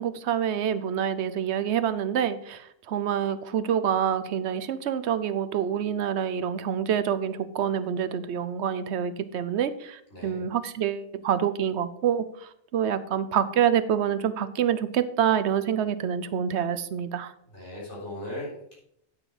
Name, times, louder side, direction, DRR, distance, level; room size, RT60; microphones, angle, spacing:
voice 1, 0.0-17.3, right 9 dB, 75° right, 13 dB, 0.9 m, -27 dB
voice 2, 10.1-10.4 17.5-18.8, left 1 dB, 90° left, -5 dB, 4.3 m, -38 dB
9.2 x 6.1 x 5.0 m, 0.73 s
omnidirectional pair, 1.2 m